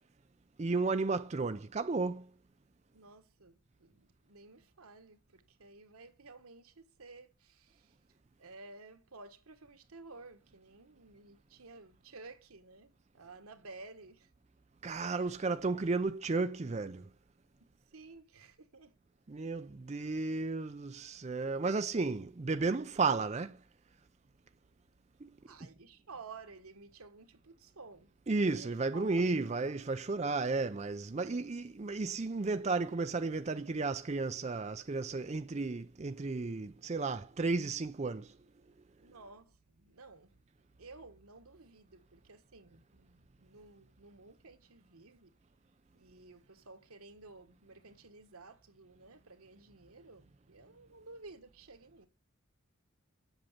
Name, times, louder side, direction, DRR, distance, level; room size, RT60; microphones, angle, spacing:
voice 1, 0.6-2.3 14.8-17.1 19.3-23.6 25.2-25.3 28.3-38.4, right 3 dB, 30° right, 0.4 m, -33 dB
voice 2, 2.9-8.0 8.4-14.3 15.1-15.4 17.9-18.9 25.4-30.0 39.0-40.4 40.8-45.4 45.9-52.1, right 3 dB, 90° right, 1.4 m, -54 dB
8.0 x 6.9 x 7.3 m
head